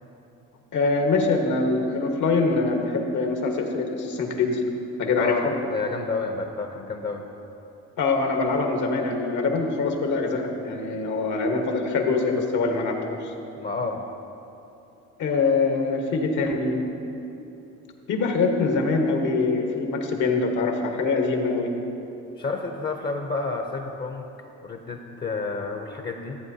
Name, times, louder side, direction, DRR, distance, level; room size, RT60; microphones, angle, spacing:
voice 1, 0.7-4.6 5.0-5.3 8.0-13.3 15.2-16.8 18.1-21.7, left 3 dB, 75° left, 3 dB, 1.2 m, -24 dB
voice 2, 5.2-7.3 13.6-14.1 22.4-24.3 24.6-26.4, left 3 dB, 35° left, 4 dB, 0.6 m, -30 dB
14.0 x 8.5 x 2.7 m, 2.9 s
cardioid pair, 90°, 30 cm